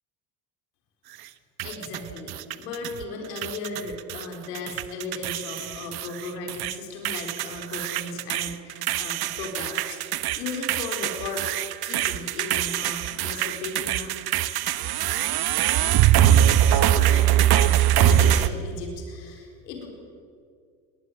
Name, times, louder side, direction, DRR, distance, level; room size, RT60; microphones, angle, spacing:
voice 1, 1.6-10.0 10.4-11.5 11.8-14.1 14.5-14.6 15.8-15.9 16.6-19.9, left 3 dB, 75° left, 2 dB, 4.5 m, -36 dB
sound 1, 1.6-3.0 3.4-4.2 4.6-6.7 7.0-18.5, right 12 dB, 50° right, 1.1 m, -23 dB
21.0 x 19.5 x 8.9 m, 2.2 s
hypercardioid pair, 65°, 49 cm